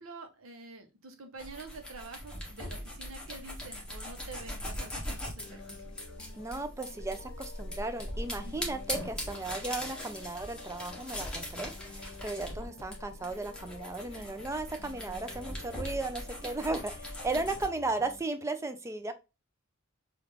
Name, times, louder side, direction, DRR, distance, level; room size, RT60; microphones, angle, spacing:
voice 1, 0.0-6.0 8.4-8.5 14.1-14.3 17.3-17.4, right 3 dB, 70° right, 6 dB, 0.8 m, -47 dB
sound 1, 1.4-17.7, left 1 dB, 5° left, 0.9 m, -40 dB
sound 2, 5.4-18.2, left 4 dB, 80° left, 0.7 m, -51 dB
voice 2, 6.3-19.1, right 3 dB, 15° right, 9 dB, 0.3 m, -35 dB
3.2 x 2.4 x 3.3 m, 0.27 s
head